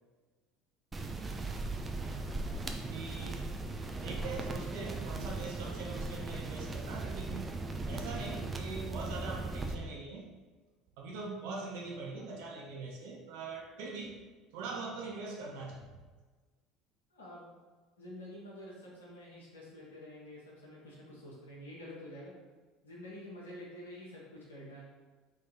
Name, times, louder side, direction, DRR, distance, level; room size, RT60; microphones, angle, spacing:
sound 1, 0.9-9.7, right 2 dB, 20° right, 0.5 m, -38 dB
voice 1, 2.9-3.5 4.0-7.5 7.9-10.3 11.0-14.2 14.5-16.0, right 3 dB, 65° right, -1 dB, 0.7 m, -42 dB
voice 2, 17.1-17.5 18.0-22.3 22.8-24.9, left 1 dB, 80° left, -6 dB, 1.1 m, -48 dB
3.8 x 3.2 x 4.1 m, 1.3 s
figure-of-eight pair, 65°, 0 cm